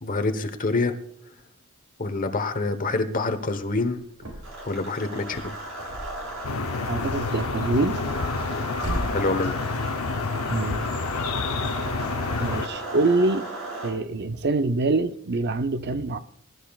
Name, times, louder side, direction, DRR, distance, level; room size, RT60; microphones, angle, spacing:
voice 1, 0.0-1.0 2.0-4.0 4.6-5.5 9.1-9.6, left 3 dB, 40° left, 1.1 m, -26 dB
sound 1, 3.9-4.7 5.1-6.5 6.8-9.1, right 1 dB, 85° right, 4.5 m, -37 dB
sound 2, 4.4-13.9, right 2 dB, 65° right, 6.4 m, -35 dB
sound 3, 6.4-12.7, left 4 dB, 75° left, 0.7 m, -29 dB
voice 2, 6.9-8.0 10.5-10.9 12.4-13.5 13.8-16.2, right 3 dB, 50° right, 0.6 m, -25 dB
21.0 x 12.0 x 2.4 m
head